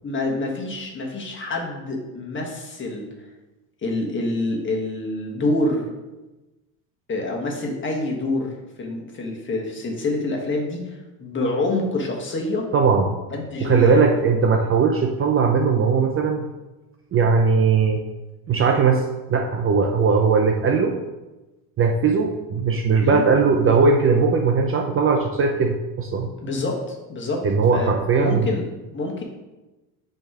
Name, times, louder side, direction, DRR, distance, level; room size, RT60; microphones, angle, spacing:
voice 1, 0.0-3.1 3.8-5.9 7.1-8.5 8.8-12.6 13.3-14.0 23.0-23.2 26.4-27.4 27.7-27.9 28.2-28.6 28.9-29.2, left 2 dB, 25° left, -1 dB, 1.5 m, -26 dB
voice 2, 12.7-13.1 13.6-16.5 17.1-18.0 18.5-19.0 19.3-20.9 21.8-26.3 27.4-28.5, right 5 dB, 30° right, 3 dB, 0.5 m, -19 dB
6.2 x 3.4 x 4.7 m, 1.1 s
supercardioid pair, 90°, 44 cm